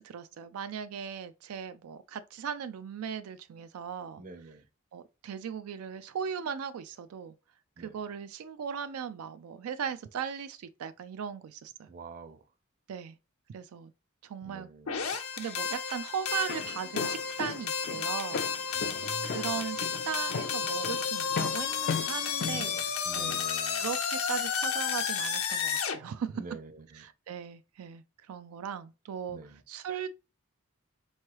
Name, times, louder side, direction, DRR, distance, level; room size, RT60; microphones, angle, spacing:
voice 1, 0.0-4.2 4.9-7.3 7.8-11.9 12.9-13.1 13.5-13.9 14.2-14.7 15.3-18.5 19.2-23.3 23.7-26.4 26.9-30.1, right 7 dB, 90° right, 0.4 m, -38 dB
voice 2, 4.2-4.6 7.8-8.0 11.9-12.4 14.4-15.1 18.7-19.6 22.5-23.9 26.0-27.0 29.3-29.6, right 3 dB, 40° right, 0.6 m, -47 dB
Synth Rise, 14.9-26.0, left 6 dB, 85° left, 0.9 m, -32 dB
Walk footsteps, 16.3-23.4, left 5 dB, 45° left, 0.4 m, -37 dB
4.4 x 3.1 x 2.9 m
head